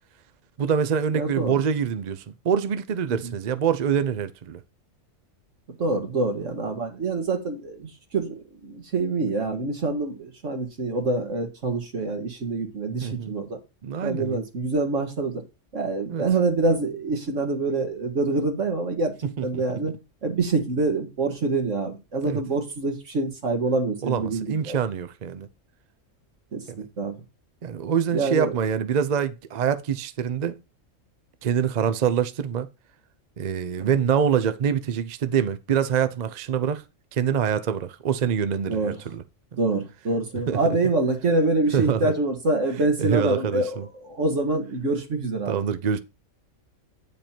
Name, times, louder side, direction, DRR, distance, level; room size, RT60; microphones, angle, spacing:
voice 1, 0.6-4.6 13.0-13.3 13.8-14.4 16.1-16.2 19.4-19.6 22.2-22.4 24.0-25.5 26.7-26.9 27.6-30.6 31.4-32.7 33.4-36.8 37.1-39.2 40.5-40.6 41.7-42.1 43.0-43.9 45.5-46.0, right 8 dB, 50° right, 0.5 m, -25 dB
voice 2, 1.1-1.6 3.2-3.3 5.8-13.6 14.0-15.4 15.7-19.9 20.2-24.8 26.5-27.1 28.1-28.6 33.8-33.9 38.7-39.0 39.6-45.6, right 3 dB, 65° right, 1.9 m, -26 dB
9.1 x 5.2 x 4.3 m
omnidirectional pair, 1.4 m